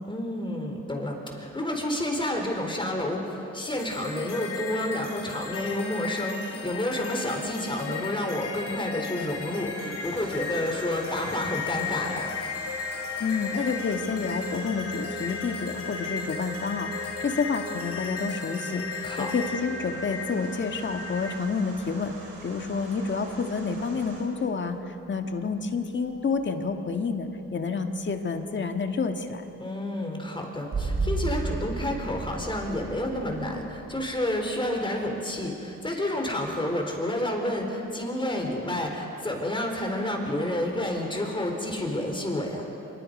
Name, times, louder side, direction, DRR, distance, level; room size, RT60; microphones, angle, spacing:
voice 1, 0.1-12.3 19.0-19.3 29.6-42.7, left 1 dB, 15° left, 2 dB, 4.2 m, -30 dB
sound 1, 3.7-21.3, left 5 dB, 55° left, 3.2 m, -35 dB
sound 2, 10.0-24.2, right 2 dB, 80° right, 6.3 m, -46 dB
voice 2, 13.2-22.1 22.4-29.4, left 4 dB, 40° left, 6 dB, 1.7 m, -29 dB
sound 3, 21.5-22.4 24.1-24.2 30.7-35.4, right 3 dB, 40° right, 3.4 m, -33 dB
26.0 x 24.0 x 5.4 m, 2.9 s
cardioid pair, 90°, 30 cm